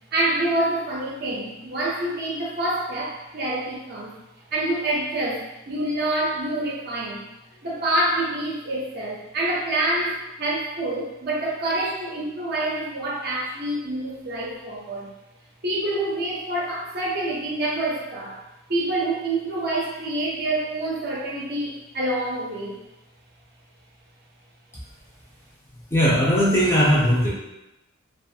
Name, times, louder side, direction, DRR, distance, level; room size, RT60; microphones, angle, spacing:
voice 1, 0.1-4.1 4.5-7.3 7.6-15.1 15.6-18.4 18.7-22.8, right 1 dB, 45° right, -4 dB, 0.6 m, -27 dB
voice 2, 25.9-27.3, equal, 10° left, -7 dB, 0.5 m, -18 dB
2.5 x 2.3 x 2.7 m, 0.96 s
head